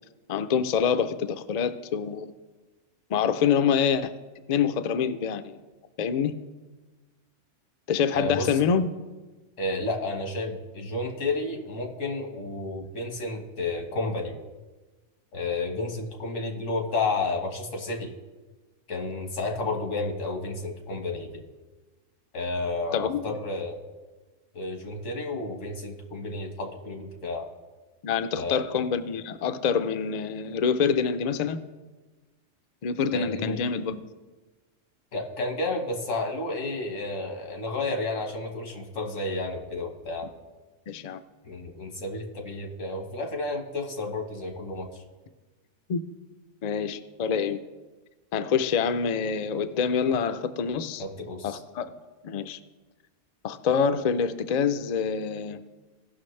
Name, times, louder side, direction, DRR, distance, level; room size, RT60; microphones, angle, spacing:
voice 1, 0.3-2.3 3.1-4.1 4.5-5.6 6.0-6.3 7.9-8.9 22.9-23.4 28.0-31.6 32.8-34.0 40.9-41.2 45.9-46.0 46.6-47.6 48.3-51.0 51.4-51.9 52.2-52.6 53.4-55.6, left 6 dB, 60° left, 11 dB, 0.4 m, -26 dB
voice 2, 8.1-8.6 9.6-14.4 15.3-18.1 18.9-21.4 22.3-23.8 24.5-27.5 28.3-28.6 33.1-33.6 35.1-40.3 41.4-45.0 51.0-51.6, left 2 dB, 90° left, 2 dB, 1.7 m, -31 dB
17.0 x 6.1 x 3.2 m, 1.2 s
omnidirectional pair, 1.3 m